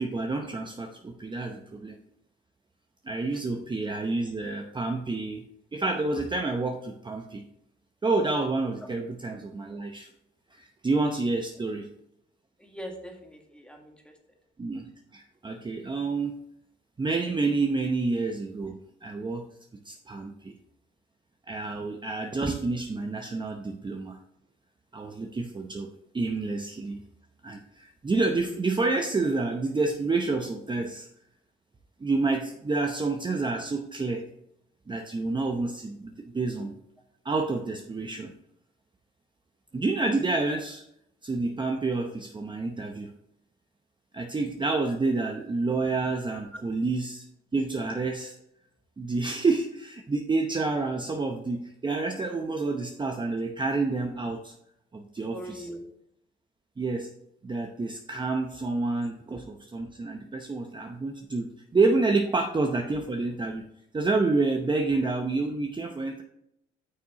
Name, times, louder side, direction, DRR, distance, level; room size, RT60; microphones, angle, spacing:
voice 1, 0.0-2.0 3.0-5.4 5.7-7.4 8.0-10.1 10.5-11.9 14.6-16.3 17.0-19.5 19.7-20.5 21.5-24.2 24.9-27.0 27.4-31.1 32.0-34.2 34.9-36.8 37.2-38.3 39.7-40.8 41.2-43.1 44.1-47.2 47.5-48.4 49.0-54.5 54.9-55.6 56.8-57.1 57.4-63.6 63.9-66.2, right 3 dB, 25° right, 3 dB, 0.8 m, -29 dB
voice 2, 12.6-14.4 46.5-46.6 55.3-55.8, equal, 5° left, 2 dB, 1.7 m, -42 dB
9.4 x 6.0 x 3.0 m, 0.77 s
cardioid pair, 90°, 20 cm